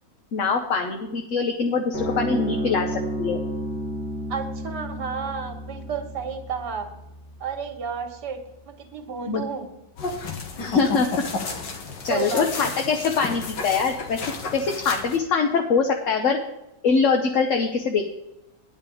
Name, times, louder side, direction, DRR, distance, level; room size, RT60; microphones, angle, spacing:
voice 1, 0.3-3.4 9.3-9.4 10.6-11.1 12.0-14.3 14.5-16.4 16.8-18.0, left 5 dB, 55° left, 3 dB, 1.1 m, -23 dB
sound 1, 1.9-8.6, right 1 dB, 70° left, 3.3 m, -32 dB
voice 2, 4.3-6.9 7.4-9.7 12.1-12.7, right 6 dB, 70° right, 5 dB, 1.9 m, -32 dB
sound 2, 10.0-15.2, left 4 dB, 85° left, 1.9 m, -32 dB
9.7 x 5.9 x 7.1 m, 0.92 s
omnidirectional pair, 1.9 m